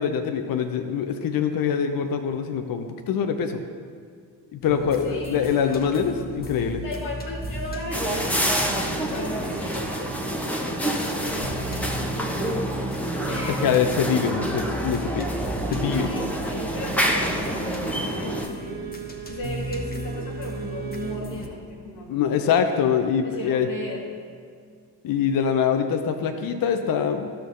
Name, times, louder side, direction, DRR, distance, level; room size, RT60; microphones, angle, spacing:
voice 1, 0.0-3.6 4.5-6.8 13.6-15.3 15.7-16.1 22.1-23.7 25.0-27.3, left 7 dB, 45° left, 6 dB, 0.7 m, -24 dB
sound 1, 4.6-21.5, right 1 dB, 20° left, 1.3 m, -35 dB
voice 2, 5.0-6.1 6.8-10.1 10.6-12.8 13.2-13.7 16.0-18.9 19.2-22.7 23.2-24.0, left 1 dB, 85° left, -3 dB, 1.5 m, -37 dB
sound 2, 7.9-18.5, right 1 dB, 5° left, 1.0 m, -27 dB
Bowed string instrument, 17.2-21.3, right 8 dB, 20° right, 1.3 m, -40 dB
13.5 x 6.5 x 2.7 m, 2.1 s
figure-of-eight pair, 40°, 50 cm